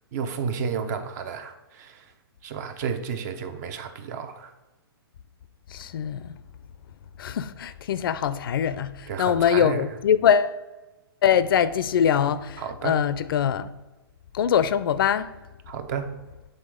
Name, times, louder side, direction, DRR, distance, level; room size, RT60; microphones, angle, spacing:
voice 1, 0.1-2.1 2.4-4.5 9.1-9.8 12.6-13.0 15.7-16.1, right 6 dB, 45° right, 0.7 m, -31 dB
voice 2, 5.7-6.4 7.2-10.6 11.2-13.7 14.3-15.3, left 8 dB, 65° left, 0.4 m, -23 dB
7.9 x 3.8 x 4.9 m
hypercardioid pair, 140°, 13 cm